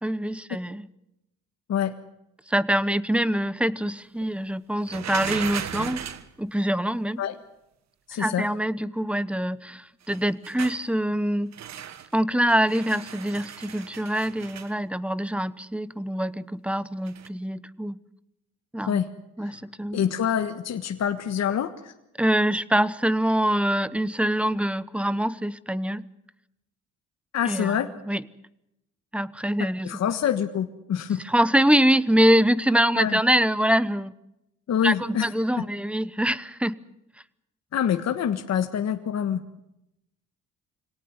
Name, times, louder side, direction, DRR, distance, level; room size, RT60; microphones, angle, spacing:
voice 1, 0.0-0.9 2.5-6.0 6.4-7.2 8.1-11.5 12.1-18.0 18.7-19.0 19.4-20.0 22.2-26.0 27.4-27.8 28.1-28.2 29.1-29.9 31.2-34.1 34.8-36.7, right 1 dB, 5° right, 18 dB, 1.0 m, -24 dB
sound 1, 4.9-6.3 10.0-10.9 11.5-12.1 12.5-14.7 17.1-17.3, right 9 dB, 65° right, 1.6 m, -36 dB
voice 2, 8.1-8.4 18.9-19.1 19.9-21.9 27.3-27.9 29.8-31.2 32.9-33.2 34.7-35.3 37.7-39.6, left 9 dB, 60° left, 7 dB, 1.5 m, -26 dB
25.0 x 18.0 x 9.6 m, 0.86 s
cardioid pair, 90°, 30 cm